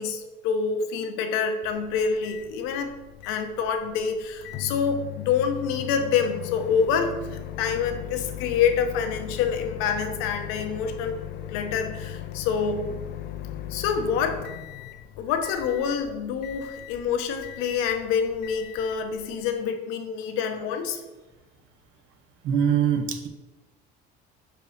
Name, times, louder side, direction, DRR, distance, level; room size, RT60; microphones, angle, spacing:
voice 1, 0.0-2.9 3.2-11.2 11.5-12.9 13.7-14.4 15.2-21.0, left 6 dB, 80° left, 6 dB, 0.9 m, -27 dB
Microwave oven, 1.6-19.6, left 12 dB, 55° left, 0.4 m, -39 dB
voice 2, 22.4-23.3, right 8 dB, 70° right, 6 dB, 0.9 m, -23 dB
5.1 x 4.6 x 4.8 m, 1.1 s
cardioid pair, 110°, 21 cm